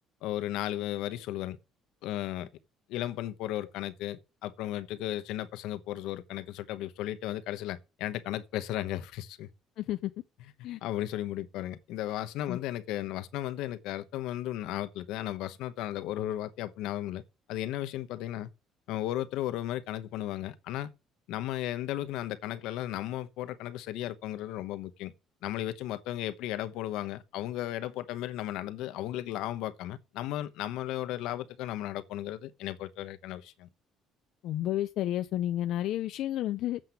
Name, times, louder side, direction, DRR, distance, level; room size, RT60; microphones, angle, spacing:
voice 1, 0.2-1.6 2.0-2.5 2.9-9.5 10.8-17.2 17.5-18.5 18.9-20.9 21.3-25.1 25.4-33.7, left 13 dB, 85° left, 1.0 m, -35 dB
voice 2, 9.8-10.1 10.6-10.8 12.5-12.6 34.4-36.8, left 13 dB, 65° left, 0.6 m, -31 dB
7.7 x 7.5 x 7.0 m
cardioid pair, 155°, 0 cm